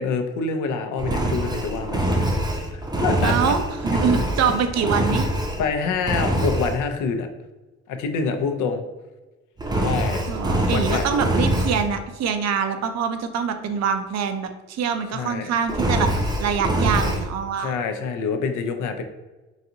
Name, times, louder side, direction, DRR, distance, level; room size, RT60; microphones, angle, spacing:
voice 1, 0.0-2.3 2.5-3.5 5.1-5.2 5.6-7.3 7.9-8.8 9.8-10.2 10.7-11.1 15.1-15.5 17.6-19.0, left 5 dB, 80° left, 7 dB, 0.5 m, -26 dB
Engine, 1.0-5.7 6.0-6.8 9.6-11.9 15.7-17.2, right 1 dB, 15° right, 0.6 m, -24 dB
voice 2, 3.2-5.3 10.3-17.7, right 6 dB, 60° right, 8 dB, 0.5 m, -24 dB
4.0 x 2.5 x 2.7 m, 1.1 s
cardioid pair, 90°, 30 cm